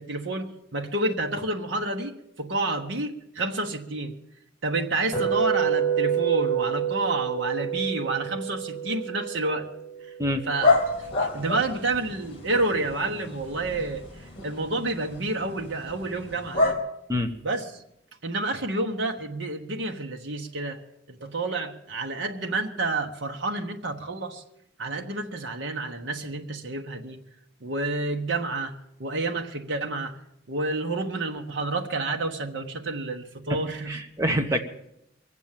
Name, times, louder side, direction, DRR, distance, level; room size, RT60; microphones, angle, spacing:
voice 1, 0.0-2.1 2.4-4.1 4.6-9.7 10.5-14.0 14.4-16.8 17.4-17.6 18.2-20.8 21.1-24.4 24.8-27.2 27.6-28.7 29.0-30.1 30.5-34.0 34.3-34.4, right 2 dB, 70° right, 3 dB, 1.2 m, -29 dB
sound 1, 5.1-11.2, right 8 dB, 15° left, 6.3 m, -28 dB
sound 2, 10.6-16.7, left 3 dB, 30° left, 2.8 m, -29 dB
voice 2, 33.9-34.6, equal, 15° right, 4 dB, 1.0 m, -25 dB
23.0 x 8.2 x 7.4 m, 0.81 s
head